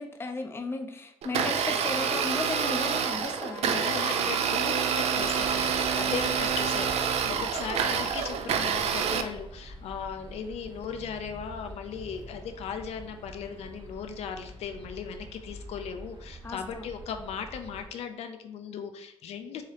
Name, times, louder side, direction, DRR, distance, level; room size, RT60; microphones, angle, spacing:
voice 1, 0.0-3.8 7.2-7.3 16.4-16.9, left 3 dB, 20° left, 5 dB, 0.4 m, -35 dB
Domestic sounds home sounds, 1.2-9.2, right 7 dB, 85° right, 0.4 m, -27 dB
voice 2, 3.7-19.6, left 7 dB, 90° left, 7 dB, 0.4 m, -37 dB
sound 1, 5.2-17.9, right 1 dB, 45° right, 1.0 m, -46 dB
4.8 x 2.8 x 2.8 m, 0.82 s
cardioid pair, 125°, 11 cm